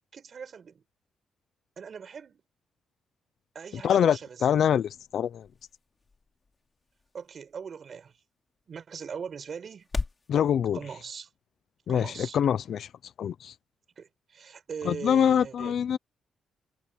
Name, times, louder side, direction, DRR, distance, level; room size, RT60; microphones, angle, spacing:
voice 1, 0.1-0.8 1.8-2.4 3.5-4.5 7.1-8.2 8.7-9.9 10.7-11.3 11.9-12.4 14.0-15.8, right 6 dB, 45° right, 5.6 m, -40 dB
voice 2, 3.8-5.5 10.3-10.8 11.9-12.9 13.2-13.5 14.8-16.0, left 8 dB, 60° left, 0.7 m, -25 dB
sound 1, 4.0-10.3, left 3 dB, 25° left, 3.4 m, -41 dB
cardioid pair, 145°, 0 cm